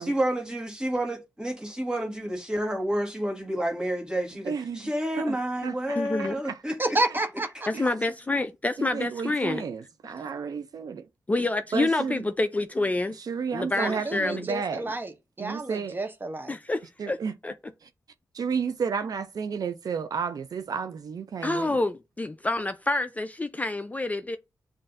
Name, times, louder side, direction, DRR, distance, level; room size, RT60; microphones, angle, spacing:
voice 1, 0.0-6.8, right 1 dB, 10° right, 1.5 m, -29 dB
voice 2, 4.5-4.8 5.2-5.4 5.6-5.8 6.2-6.6 7.7-7.9 8.8-11.0 11.7-12.3 13.1-15.0 15.4-16.0 17.0-17.4 17.8-17.9 18.3-21.8, right 6 dB, 65° right, 0.4 m, -32 dB
voice 3, 6.0-6.3 7.7-9.6 11.3-13.2 13.5-14.4 16.5-17.2 17.4-17.5 21.4-24.4, left 2 dB, 20° left, 0.3 m, -27 dB
voice 4, 6.8-7.5 13.8-15.1 15.4-16.5, right 2 dB, 30° right, 0.7 m, -30 dB
7.4 x 2.5 x 2.5 m
cardioid pair, 70°, 7 cm